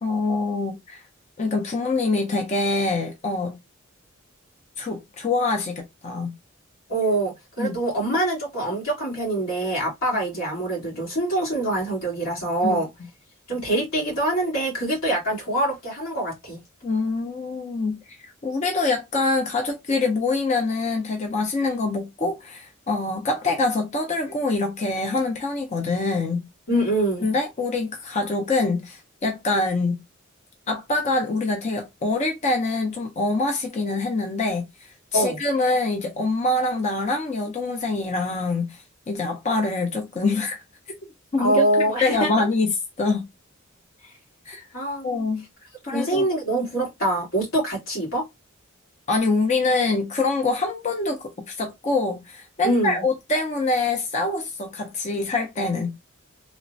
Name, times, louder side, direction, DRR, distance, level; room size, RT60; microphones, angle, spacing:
voice 1, 0.0-1.0 1.4-3.6 4.8-6.3 7.6-7.8 12.6-12.8 16.8-18.2 18.4-26.5 27.2-30.0 30.7-40.6 41.3-41.7 42.0-42.7 43.0-43.2 44.5-44.7 45.0-45.4 45.9-46.3 49.1-56.0, left 3 dB, 35° left, 0.4 m, -25 dB
voice 2, 6.9-12.9 13.5-16.6 26.7-27.3 35.1-35.4 41.4-42.4 44.7-45.1 45.9-48.3 52.6-53.0, right 1 dB, 85° left, 1.8 m, -24 dB
3.0 x 2.1 x 2.5 m
head